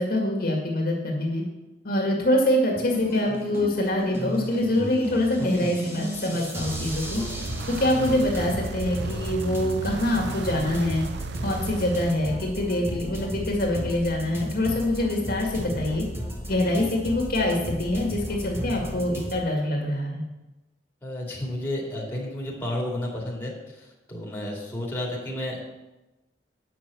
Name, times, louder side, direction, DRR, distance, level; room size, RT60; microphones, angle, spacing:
voice 1, 0.0-1.4 1.8-7.2 7.7-11.0 11.4-16.0 16.5-20.3, left 1 dB, 55° left, -1 dB, 2.1 m, -25 dB
sound 1, 2.7-19.3, equal, 15° right, 1.4 m, -34 dB
voice 2, 5.4-5.7 21.0-25.7, left 1 dB, 10° left, -3 dB, 2.6 m, -32 dB
sound 2, 6.6-12.1, right 4 dB, 65° right, 0.4 m, -35 dB
9.2 x 6.2 x 6.9 m, 1.0 s
head